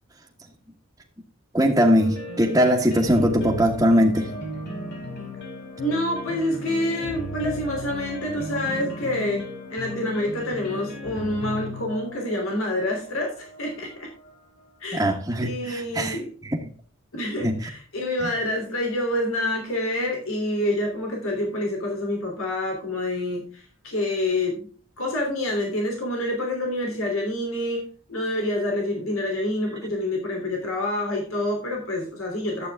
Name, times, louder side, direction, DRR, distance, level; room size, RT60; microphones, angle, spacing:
voice 1, 1.5-4.3 14.9-16.2 17.4-17.6, equal, 15° right, -4 dB, 1.3 m, -20 dB
sound 1, 1.9-14.8, left 1 dB, 55° left, 4.4 m, -36 dB
voice 2, 5.8-14.1 14.8-15.1 15.4-16.3 17.1-24.7 25.0-32.7, left 1 dB, 90° left, 0 dB, 3.1 m, -27 dB
12.0 x 8.4 x 3.5 m, 0.41 s
head